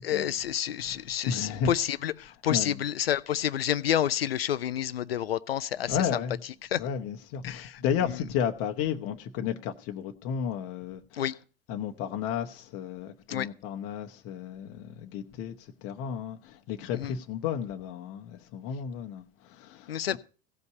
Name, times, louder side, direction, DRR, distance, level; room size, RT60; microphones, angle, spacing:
voice 1, 0.0-6.2 6.7-6.8 7.4-8.2 11.1-11.3 13.3-13.5 16.9-17.1 19.9-20.2, left 10 dB, 80° left, 0.7 m, -29 dB
voice 2, 1.3-1.7 2.5-2.8 5.9-6.4 6.8-11.2 11.7-20.2, left 8 dB, 50° left, 1.1 m, -33 dB
16.0 x 5.4 x 8.0 m
figure-of-eight pair, 75°, 29 cm